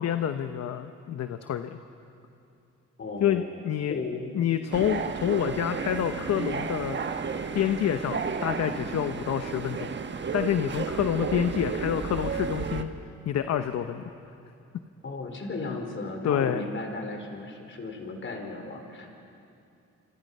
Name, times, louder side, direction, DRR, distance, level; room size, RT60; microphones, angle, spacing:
voice 1, 0.0-1.8 3.2-3.9 4.3-7.0 7.5-10.0 10.3-12.9 13.3-14.0 16.2-16.6, left 9 dB, 60° left, 9 dB, 1.0 m, -28 dB
voice 2, 3.0-3.5 3.9-4.4 15.0-19.1, left 3 dB, 40° left, 3 dB, 4.2 m, -35 dB
sound 1, 4.7-12.8, right 5 dB, 40° right, 1.3 m, -32 dB
26.5 x 26.0 x 5.5 m, 2.6 s
cardioid pair, 90°, 30 cm